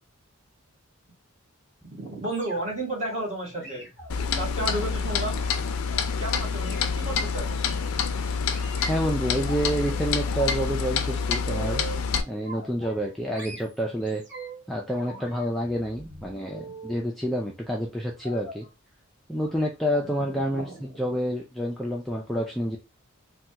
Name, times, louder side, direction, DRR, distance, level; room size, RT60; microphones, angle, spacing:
voice 1, 1.9-3.9 4.3-5.4 6.2-7.6 20.2-20.8, right 1 dB, 35° right, -3 dB, 1.3 m, -32 dB
sound 1, 2.3-2.9 3.6-6.1 6.5-6.9 7.6-7.9 8.5-9.6 10.0-10.5 10.8-12.1 12.4-13.1 13.3-14.7 15.0-17.1 18.2-18.7 19.4-19.5 19.8-20.0 20.3-20.5 20.8-20.9, right 3 dB, 55° right, 1.4 m, -43 dB
Clock, 4.1-12.2, left 5 dB, 75° left, 0.4 m, -27 dB
voice 2, 8.9-11.8 12.2-14.2 14.7-18.7 19.3-22.8, equal, ahead, -2 dB, 0.3 m, -28 dB
3.2 x 2.2 x 2.7 m, 0.25 s
head